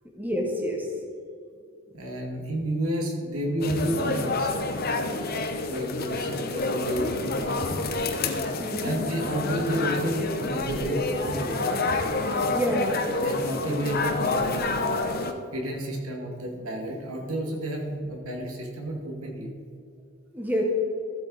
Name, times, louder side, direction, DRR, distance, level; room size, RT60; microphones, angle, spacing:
voice 1, 0.1-0.9 8.6-8.9 12.5-12.9 20.3-20.6, equal, 10° right, 0 dB, 1.2 m, -27 dB
voice 2, 1.9-4.7 5.7-7.9 8.8-11.8 13.2-14.8 15.5-19.5, right 1 dB, 80° right, 0 dB, 2.2 m, -31 dB
sound 1, 3.6-15.3, left 3 dB, 45° left, 0.9 m, -28 dB
14.0 x 8.0 x 4.1 m, 2.4 s
head